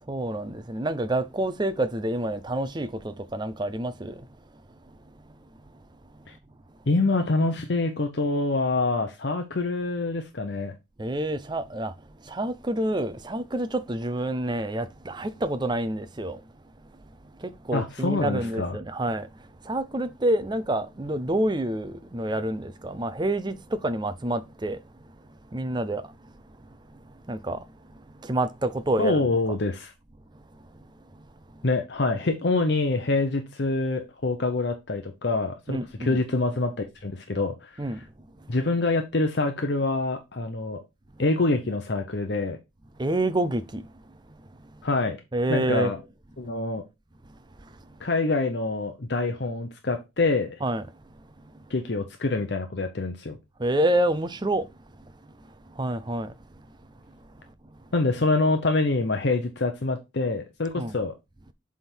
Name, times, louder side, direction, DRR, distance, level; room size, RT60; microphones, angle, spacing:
voice 1, 0.1-4.3 11.0-11.9 12.2-16.4 17.4-24.8 25.5-26.3 26.9-27.0 27.3-27.7 27.9-29.3 31.5-31.6 35.7-36.2 37.8-38.0 38.4-38.5 43.0-44.1 44.7-44.8 45.3-45.9 47.6-47.7 50.6-50.8 53.6-54.7 55.0-55.1 55.4-56.3 60.8-60.9, right 1 dB, 20° right, 0.5 m, -28 dB
voice 2, 6.9-10.7 17.7-18.8 29.0-29.9 31.6-37.8 38.5-40.8 41.2-42.6 44.8-45.2 45.5-46.0 46.4-46.8 48.0-50.6 51.7-53.4 57.9-61.1, left 3 dB, 55° left, 0.8 m, -26 dB
7.6 x 3.6 x 4.5 m
head